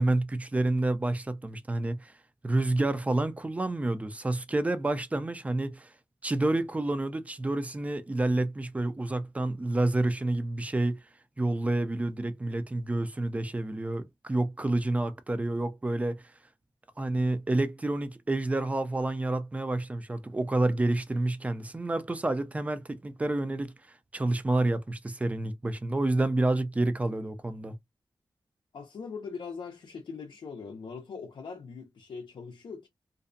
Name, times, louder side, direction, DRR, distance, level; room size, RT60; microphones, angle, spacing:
voice 1, 0.0-2.1 2.4-5.9 6.2-11.0 11.4-16.2 17.0-23.7 24.1-27.7, right 2 dB, 15° right, 0.4 m, -29 dB
voice 2, 28.7-32.9, left 5 dB, 75° left, 0.5 m, -41 dB
2.5 x 2.1 x 2.5 m
wide cardioid pair, 120°, 8 cm